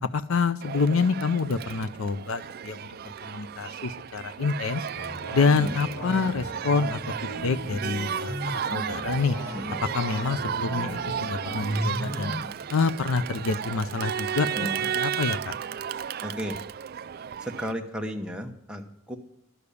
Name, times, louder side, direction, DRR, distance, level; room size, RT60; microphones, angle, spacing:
voice 1, 0.0-2.8 3.3-4.9 5.3-9.4 9.9-12.3 12.7-14.5 14.9-15.5, left 4 dB, 85° left, 13 dB, 0.5 m, -27 dB
Crowd, 0.6-17.7, right 8 dB, 45° right, 0.3 m, -34 dB
sound 1, 4.9-12.5, equal, 50° left, 3.1 m, -35 dB
voice 2, 16.2-16.6 17.4-19.2, equal, 5° right, 3 dB, 1.0 m, -34 dB
11.5 x 6.9 x 8.3 m, 0.80 s
head